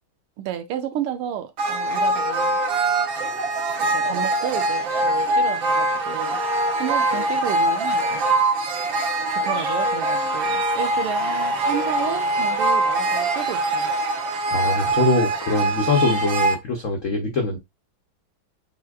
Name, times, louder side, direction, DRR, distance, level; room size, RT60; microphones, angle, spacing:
voice 1, 0.4-2.6 3.8-6.4 6.8-8.3 9.3-13.9 14.6-14.8, right 10 dB, 90° right, 1.7 m, -32 dB
sound 1, 1.6-16.6, right 2 dB, 65° right, 1.6 m, -23 dB
voice 2, 14.5-17.6, left 3 dB, 60° left, 0.8 m, -23 dB
7.0 x 2.9 x 2.3 m
omnidirectional pair, 2.4 m